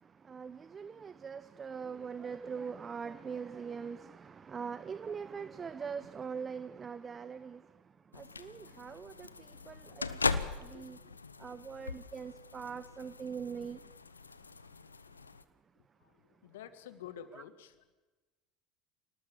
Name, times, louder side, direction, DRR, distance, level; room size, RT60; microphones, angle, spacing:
voice 1, 0.0-11.0 11.4-13.9 17.3-17.4, right 6 dB, 30° right, 0.9 m, -42 dB
sound 1, 8.1-15.4, left 4 dB, 90° left, 0.8 m, -39 dB
voice 2, 10.6-11.2 16.0-17.8, left 9 dB, 70° left, 1.9 m, -50 dB
28.0 x 19.0 x 7.2 m
figure-of-eight pair, 70°, 0 cm